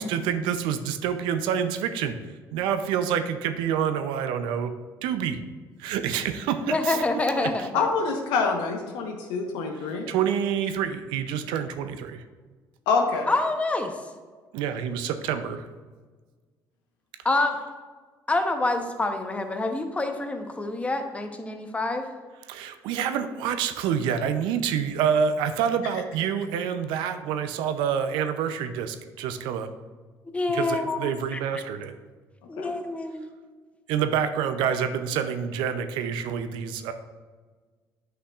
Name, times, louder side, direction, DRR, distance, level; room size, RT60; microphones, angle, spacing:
voice 1, 0.0-2.1 2.5-4.7 5.0-5.4 5.8-7.0 7.4-7.5 10.1-12.2 14.5-15.7 22.5-29.7 30.5-31.9 33.9-36.9, right 8 dB, 85° right, 9 dB, 0.5 m, -27 dB
voice 2, 6.7-7.9 13.3-13.9 17.2-17.6 18.3-22.1 30.3-31.4 32.5-33.3, left 2 dB, 15° left, 6 dB, 0.8 m, -27 dB
voice 3, 7.7-10.1 12.9-13.3 32.6-32.7, left 4 dB, 85° left, 3 dB, 1.0 m, -26 dB
8.4 x 5.6 x 2.4 m, 1.4 s
cardioid pair, 90°, 8 cm